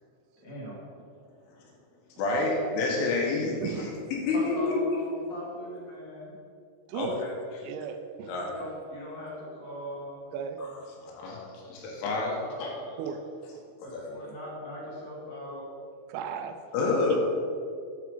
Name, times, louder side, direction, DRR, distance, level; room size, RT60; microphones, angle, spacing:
voice 1, 0.4-0.8 4.3-6.3 8.3-10.2 12.4-13.0 13.8-15.6, left 1 dB, 45° left, -7 dB, 3.4 m, -40 dB
voice 2, 2.2-4.8 6.9-7.6 8.3-8.5 10.6-10.7 11.0-12.7 13.8-14.1 16.7-17.2, left 3 dB, 80° left, -2 dB, 3.9 m, -29 dB
voice 3, 3.6-4.0 6.9-7.1 7.6-8.4 10.3-10.6 13.0-13.2 16.1-16.6 17.1-17.2, right 8 dB, 90° right, 7 dB, 3.3 m, -36 dB
8.5 x 6.0 x 5.5 m, 2.4 s
omnidirectional pair, 5.7 m